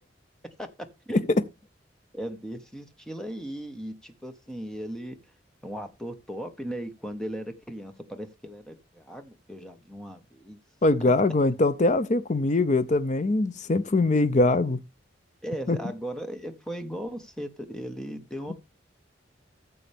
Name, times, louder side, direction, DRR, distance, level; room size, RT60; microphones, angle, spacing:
voice 1, 2.1-5.2 5.6-10.6 15.4-18.5, equal, 5° left, 1.2 m, -37 dB
voice 2, 10.8-14.8 15.7-15.8, left 2 dB, 40° left, 0.6 m, -22 dB
14.0 x 7.0 x 3.5 m
head